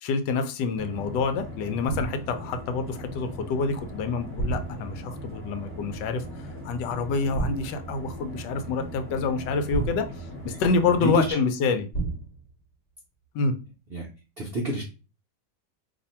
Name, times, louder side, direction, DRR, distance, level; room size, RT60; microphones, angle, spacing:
voice 1, 0.0-11.9 13.3-13.5, left 4 dB, 80° left, 1.2 m, -27 dB
sound 1, 0.7-11.3, right 1 dB, 15° right, 0.8 m, -39 dB
sound 2, 1.9-2.4 4.4-5.1 7.3-7.9 9.7-10.6 11.9-12.5, right 3 dB, 45° left, 1.1 m, -31 dB
voice 2, 11.0-11.4 13.9-14.1 14.4-14.8, right 1 dB, 70° right, 0.5 m, -27 dB
2.7 x 2.5 x 4.2 m
omnidirectional pair, 1.9 m